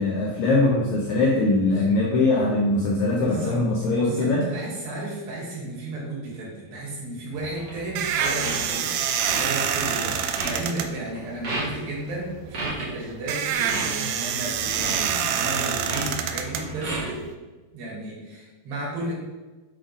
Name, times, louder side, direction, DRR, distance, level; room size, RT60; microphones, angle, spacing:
voice 1, 0.0-4.5, left 2 dB, 80° left, -1 dB, 1.7 m, -22 dB
voice 2, 3.2-3.6 4.0-9.0 9.3-17.2 17.7-19.1, right 2 dB, 70° right, -5 dB, 4.1 m, -33 dB
sound 1, 7.4-17.3, right 8 dB, 90° right, 2.5 m, -27 dB
sound 2, 7.6-7.8 8.2-8.8 9.2-9.4 9.8-10.0 10.3-10.5 11.1-11.2 11.4-11.8 12.5-12.9 13.5-13.8 14.7-15.1 15.8-16.1 16.3-17.1, right 2 dB, 40° right, 1.7 m, -31 dB
8.2 x 3.8 x 4.9 m, 1.2 s
omnidirectional pair, 4.3 m